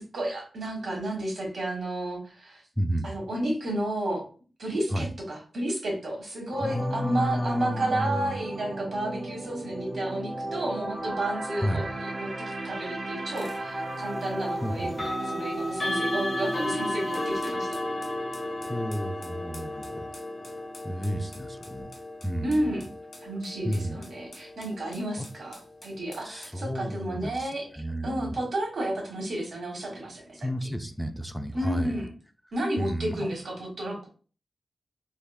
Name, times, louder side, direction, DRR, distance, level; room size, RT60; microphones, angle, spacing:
voice 1, 0.1-2.6 3.0-4.2 4.6-14.9 15.2-17.7 22.4-22.9 23.2-27.7 28.0-30.5 31.5-32.1 32.5-34.1, right 1 dB, 65° right, -1 dB, 1.4 m, -32 dB
voice 2, 2.8-3.3 4.9-5.1 6.6-8.3 11.6-11.9 14.6-14.9 18.7-20.0 20.8-21.9 22.2-22.8 23.6-24.0 25.2-25.3 26.2-28.3 30.4-32.0 32.8-33.3, equal, ahead, 7 dB, 0.3 m, -31 dB
sound 1, 6.5-20.7 21.0-21.2, right 1 dB, 45° right, 0.7 m, -36 dB
sound 2, 13.4-13.6 14.9-25.8, left 1 dB, 35° left, 0.9 m, -34 dB
sound 3, 17.1-26.6, left 2 dB, 55° left, 1.1 m, -50 dB
3.4 x 3.2 x 2.3 m, 0.38 s
wide cardioid pair, 130°, 0 cm